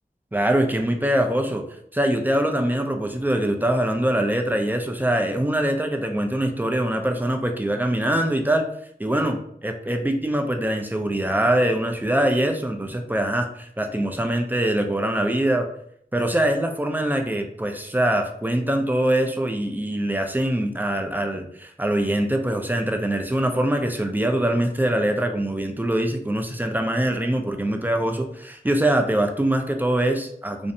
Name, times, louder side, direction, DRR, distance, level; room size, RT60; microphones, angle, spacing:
voice 1, 0.3-1.6 1.9-8.7 9.0-15.7 16.1-30.7, right 1 dB, 10° right, 4 dB, 0.3 m, -23 dB
2.5 x 2.0 x 2.6 m, 0.68 s
wide cardioid pair, 50°, 16 cm